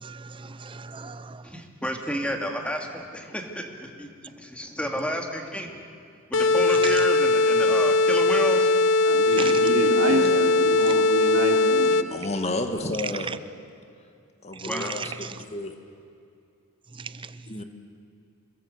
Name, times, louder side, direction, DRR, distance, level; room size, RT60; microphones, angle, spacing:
voice 1, 0.0-1.4 9.4-9.6 13.3-13.4 15.0-15.1 17.0-17.1, right 5 dB, 25° right, 14 dB, 0.6 m, -36 dB
voice 2, 1.4-5.8 6.3-8.7 9.4-9.5 14.7-15.0, equal, 5° left, 2 dB, 2.5 m, -31 dB
sound 1, 6.3-12.3, left 2 dB, 60° left, 0.7 m, -20 dB
voice 3, 9.0-12.0, right 1 dB, 75° right, 1 dB, 3.8 m, -28 dB
voice 4, 10.1-10.4 10.8-10.9 11.2-11.3 12.1-13.3 14.4-15.7 17.5-17.6, left 2 dB, 30° left, 6 dB, 2.0 m, -32 dB
27.0 x 21.5 x 8.1 m, 2.5 s
head